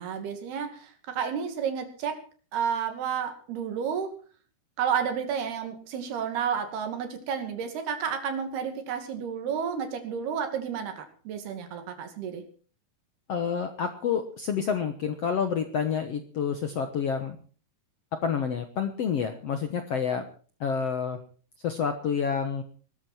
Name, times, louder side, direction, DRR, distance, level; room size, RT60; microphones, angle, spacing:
voice 1, 0.0-2.2 2.5-4.1 4.8-12.4, right 7 dB, 75° right, 6 dB, 4.4 m, -31 dB
voice 2, 13.3-17.4 18.1-20.2 20.6-21.2 21.6-22.6, left 7 dB, 65° left, 7 dB, 1.6 m, -28 dB
20.0 x 13.5 x 4.4 m, 0.40 s
omnidirectional pair, 4.5 m